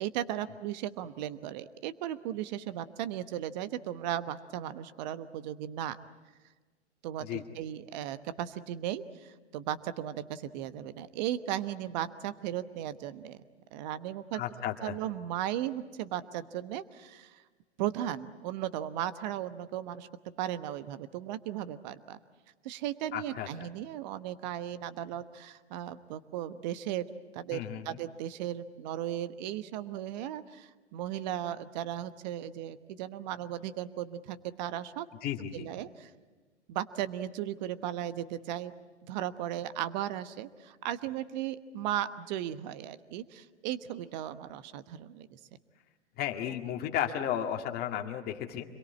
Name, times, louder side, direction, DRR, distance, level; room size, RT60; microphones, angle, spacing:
voice 1, 0.0-6.0 7.0-13.4 13.7-14.4 14.8-17.4 17.8-20.1 20.4-22.2 22.6-27.1 27.3-35.1 35.5-36.1 36.7-38.7 39.1-45.4, right 11 dB, 40° right, 12 dB, 1.2 m, -36 dB
voice 2, 14.3-14.9 23.1-23.5 27.5-28.0 35.2-35.7 46.2-48.7, left 10 dB, 25° left, 3 dB, 2.1 m, -34 dB
26.5 x 22.5 x 8.5 m, 1.3 s
figure-of-eight pair, 120°, 35 cm